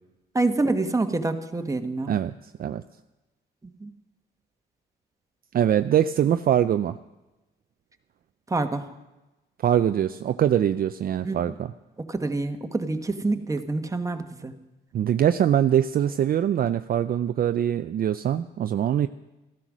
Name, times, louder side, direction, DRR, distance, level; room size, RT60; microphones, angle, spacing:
voice 1, 0.3-2.1 3.8-3.9 8.5-8.9 11.2-11.4 12.0-14.5, right 2 dB, 15° right, 6 dB, 1.2 m, -27 dB
voice 2, 5.5-7.0 9.6-11.7 14.9-19.1, right 10 dB, 50° right, 10 dB, 0.4 m, -23 dB
14.0 x 12.0 x 6.2 m, 1.1 s
cardioid pair, 90°, 20 cm